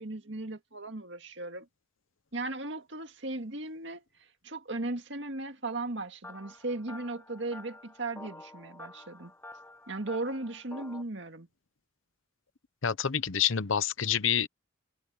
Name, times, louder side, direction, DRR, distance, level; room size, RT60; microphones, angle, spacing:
voice 1, 0.0-1.7 2.3-4.0 4.4-9.3 9.9-11.5, right 2 dB, 65° right, 2.0 m, -37 dB
sound 1, 6.2-11.0, left 2 dB, 10° left, 7.7 m, -49 dB
voice 2, 12.8-14.5, left 8 dB, 75° left, 0.9 m, -27 dB
head